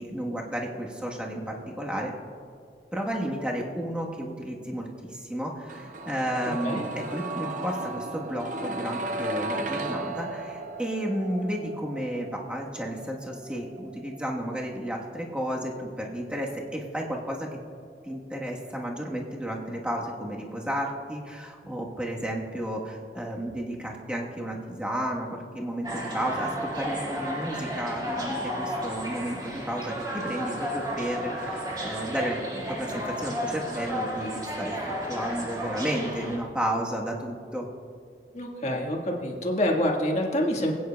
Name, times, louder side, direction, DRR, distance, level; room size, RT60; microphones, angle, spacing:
voice 1, 0.0-2.1 2.9-17.5 18.0-34.8 35.1-37.7, equal, 5° right, -2 dB, 1.3 m, -32 dB
sound 1, 5.7-17.5 17.8-17.9, right 2 dB, 45° right, 0.5 m, -36 dB
sound 2, 25.8-36.4, equal, 25° right, 1.9 m, -33 dB
voice 2, 38.3-40.7, left 1 dB, 40° left, 0 dB, 1.6 m, -26 dB
21.0 x 9.4 x 2.3 m, 2.2 s
head